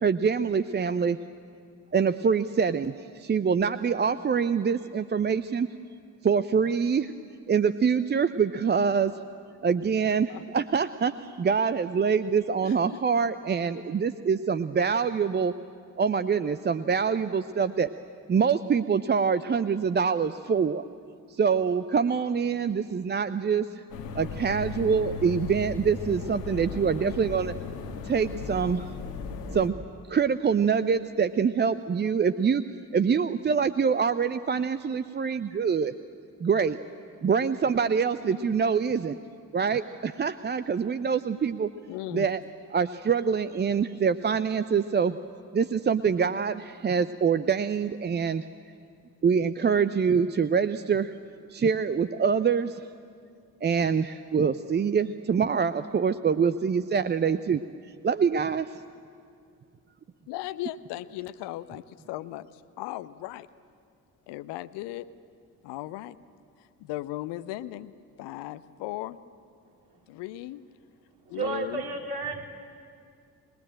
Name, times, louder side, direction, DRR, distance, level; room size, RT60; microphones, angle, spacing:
voice 1, 0.0-1.2 1.9-5.7 6.2-7.1 7.5-9.1 9.6-15.5 16.0-17.9 18.3-20.8 21.3-23.7 24.1-27.5 28.0-28.9 29.5-29.7 30.1-32.6 32.9-35.9 36.4-36.8 37.2-39.2 39.5-41.7 42.1-42.4 42.7-45.2 45.5-48.4 49.2-51.1 51.5-52.9 53.6-57.6 58.0-58.7, right 6 dB, 20° right, 12 dB, 0.6 m, -25 dB
voice 2, 12.6-13.0 38.2-38.6 41.9-42.3 60.3-62.5 62.8-63.5 64.3-65.1 65.6-66.2 66.8-67.9 68.2-69.2 70.1-70.6 71.3-71.8, left 15 dB, 60° left, 14 dB, 0.9 m, -37 dB
sound 1, 23.9-29.7, left 5 dB, 75° left, 1.8 m, -36 dB
voice 3, 69.6-70.0 71.4-72.4, right 3 dB, 50° right, 1 dB, 3.6 m, -32 dB
27.0 x 20.5 x 8.9 m, 2.3 s
figure-of-eight pair, 40°, 48 cm